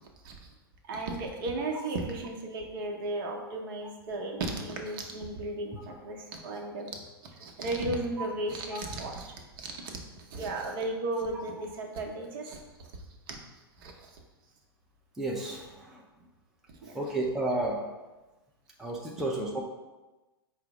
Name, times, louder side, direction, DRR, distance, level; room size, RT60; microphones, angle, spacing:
voice 1, 0.9-6.9 7.4-9.9 10.2-12.6 13.3-13.4 13.8-14.1 16.8-16.9, right 2 dB, 60° right, 1 dB, 0.8 m, -35 dB
voice 2, 15.2-16.0 16.9-17.8 18.8-19.6, right 2 dB, 5° right, -2 dB, 0.5 m, -32 dB
4.8 x 2.0 x 4.6 m, 1.1 s
hypercardioid pair, 115°, 13 cm